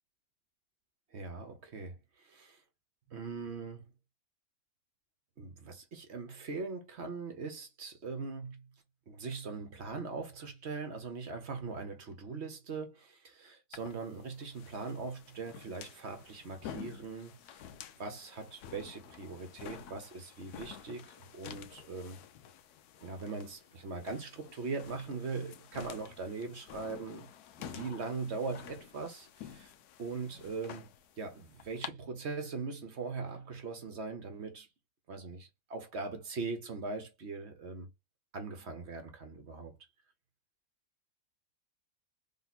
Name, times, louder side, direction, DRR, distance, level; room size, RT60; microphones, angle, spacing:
voice 1, 1.1-2.0 2.2-2.6 3.1-3.9 5.4-8.6 9.1-17.6 18.0-22.2 23.0-27.3 27.6-29.7 30.0-30.8 31.2-34.7 35.1-37.9 38.3-39.7, right 4 dB, 50° right, 1.1 m, -41 dB
sound 1, 13.7-31.9, left 9 dB, 85° left, 1.2 m, -50 dB
3.6 x 2.8 x 4.0 m
omnidirectional pair, 1.6 m